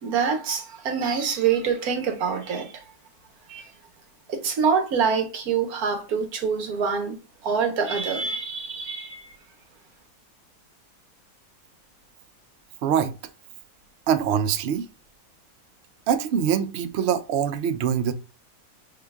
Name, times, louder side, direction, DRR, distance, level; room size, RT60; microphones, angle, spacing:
voice 1, 0.0-2.7 3.5-3.7 4.3-7.2 7.4-9.3, right 6 dB, 65° right, 1.4 m, -25 dB
voice 2, 12.8-13.1 14.1-14.9 16.1-18.1, right 8 dB, 85° right, 0.5 m, -23 dB
5.9 x 3.7 x 2.3 m
omnidirectional pair, 1.7 m